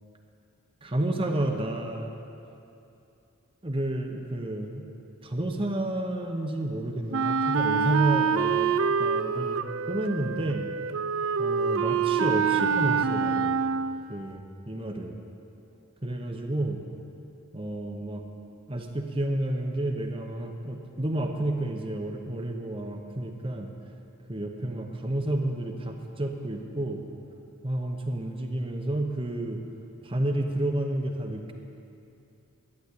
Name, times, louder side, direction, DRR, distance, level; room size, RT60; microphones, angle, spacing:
voice 1, 0.8-2.1 3.6-4.9 5.2-8.7 9.0-10.7 11.4-13.6 14.1-15.1 16.0-16.8 17.5-18.2 18.7-23.7 24.3-27.0 27.6-29.6 30.0-31.5, right 1 dB, 25° right, 3 dB, 0.9 m, -30 dB
Wind instrument woodwind instrument, 7.1-14.1, right 6 dB, 65° right, 0.4 m, -26 dB
12.0 x 10.0 x 8.3 m, 2.7 s
head